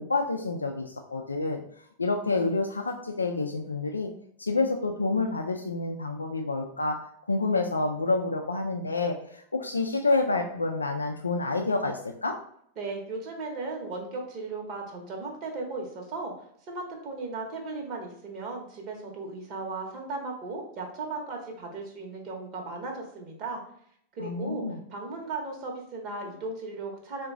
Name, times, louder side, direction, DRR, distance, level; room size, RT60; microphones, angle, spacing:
voice 1, 0.0-1.6 2.0-4.1 4.4-9.2 9.5-12.4 24.2-24.8, left 3 dB, 80° left, 3 dB, 0.3 m, -28 dB
voice 2, 12.8-16.3 16.7-23.6 24.1-24.6 24.9-27.3, right 3 dB, 40° right, 2 dB, 0.9 m, -36 dB
3.8 x 2.2 x 3.5 m, 0.65 s
figure-of-eight pair, 90°, 0 cm